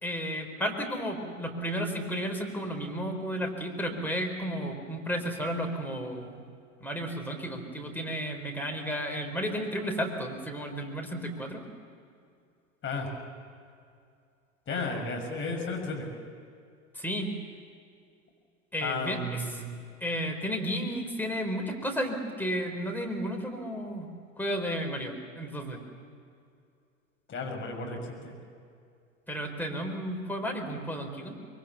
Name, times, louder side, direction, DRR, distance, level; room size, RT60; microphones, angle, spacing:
voice 1, 0.0-6.5 6.8-11.6 16.9-17.4 18.7-19.7 20.0-25.8 29.3-31.3, equal, 5° left, 2 dB, 4.3 m, -33 dB
voice 2, 14.7-16.2 18.8-19.7 27.3-28.3, left 3 dB, 30° left, 1 dB, 6.3 m, -34 dB
24.5 x 23.0 x 7.1 m, 2.4 s
figure-of-eight pair, 85°, 40 cm